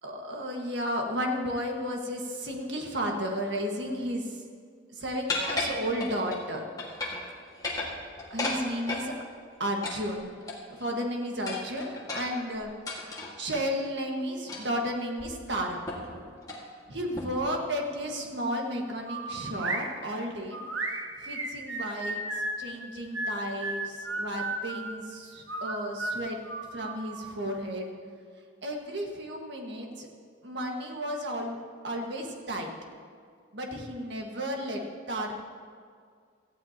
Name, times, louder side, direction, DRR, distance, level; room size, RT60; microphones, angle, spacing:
voice 1, 0.0-4.3 4.9-6.6 8.3-9.1 9.6-10.3 10.7-12.7 13.4-15.8 16.9-20.6 21.2-22.2 22.6-26.4 26.7-27.9 28.6-30.1 30.4-31.6 31.8-32.7 33.5-34.8 35.1-35.3, equal, 65° right, 1 dB, 1.7 m, -33 dB
sound 1, 5.3-6.4 6.8-7.3 7.5-9.1 9.8-10.8 11.5-13.7 14.5-14.8 15.2-15.3 15.9-16.1 16.4-16.7 17.2-17.5, left 2 dB, 20° left, 1.9 m, -34 dB
sound 2, 19.1-19.9 20.5-22.6 23.1-25.0 25.5-27.3, right 2 dB, 90° right, 1.4 m, -34 dB
17.5 x 14.5 x 2.9 m, 2.1 s
head